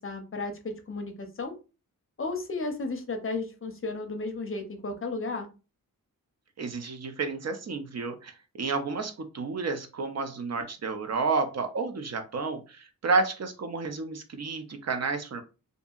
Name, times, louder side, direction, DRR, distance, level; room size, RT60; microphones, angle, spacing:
voice 1, 0.0-1.5 2.2-5.5, left 3 dB, 40° left, 5 dB, 0.5 m, -34 dB
voice 2, 6.6-15.4, right 4 dB, 50° right, 7 dB, 0.5 m, -31 dB
2.7 x 2.6 x 2.3 m, 0.32 s
wide cardioid pair, 145°, 34 cm